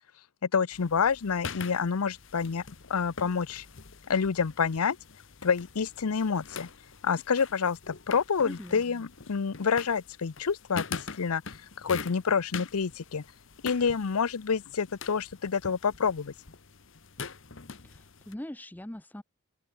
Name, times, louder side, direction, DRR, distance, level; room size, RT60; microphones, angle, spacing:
voice 1, 0.4-2.6 2.9-3.7 4.1-5.0 5.4-6.7 7.0-11.4 11.8-13.2 13.6-16.3, left 6 dB, 85° left, 0.6 m, -28 dB
sound 1, 0.7-18.3, left 5 dB, 60° left, 1.2 m, -44 dB
voice 2, 8.4-9.0 17.8-19.2, left 1 dB, 10° left, 0.5 m, -42 dB
open air
head